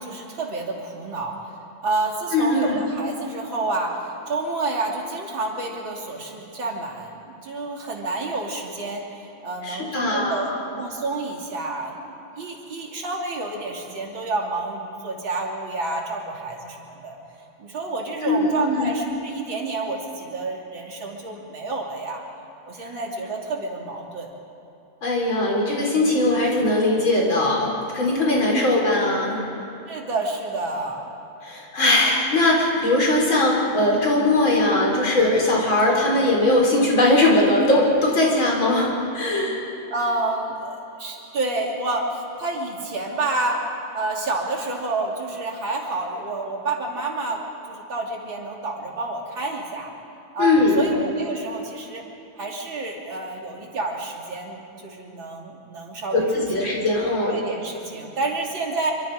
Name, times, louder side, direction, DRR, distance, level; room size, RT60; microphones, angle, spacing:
voice 1, 0.0-1.4 1.8-9.0 9.4-10.5 10.8-16.8 17.0-17.2 17.6-22.2 22.7-24.3 28.5-28.6 29.9-31.1 39.9-42.1 42.4-43.6 43.9-49.9 50.3-52.0 52.4-56.7 57.3-58.9, right 2 dB, 75° right, -1 dB, 3.7 m, -29 dB
voice 2, 2.3-2.8 9.6-10.6 18.2-18.9 25.0-29.4 31.4-38.9 39.1-39.6 50.4-50.8 56.1-57.4, left 2 dB, 75° left, -2 dB, 5.5 m, -20 dB
26.5 x 25.0 x 5.1 m, 2.9 s
omnidirectional pair, 2.2 m